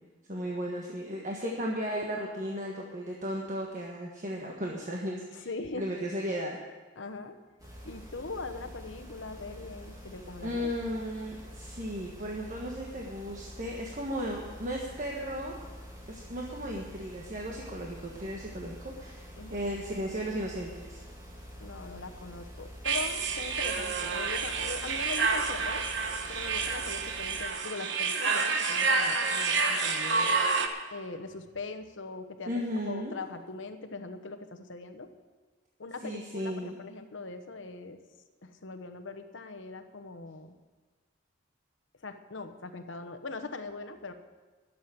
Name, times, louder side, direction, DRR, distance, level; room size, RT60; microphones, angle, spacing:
voice 1, 0.3-5.5 5.7-6.6 10.4-15.6 16.1-19.2 19.5-21.0 32.5-33.1 36.0-36.8, equal, 40° right, -2 dB, 1.4 m, -35 dB
voice 2, 5.3-5.8 7.0-7.4 7.8-10.7 19.4-19.6 21.6-25.8 26.3-30.3 30.9-35.1 35.8-38.0 38.4-40.5 42.0-44.1, left 3 dB, 80° left, 8 dB, 1.1 m, -41 dB
sound 1, 7.6-27.5, equal, 20° right, 2.4 m, -47 dB
sound 2, 22.8-30.7, right 4 dB, 70° right, 1.1 m, -29 dB
12.0 x 7.6 x 9.2 m, 1.4 s
head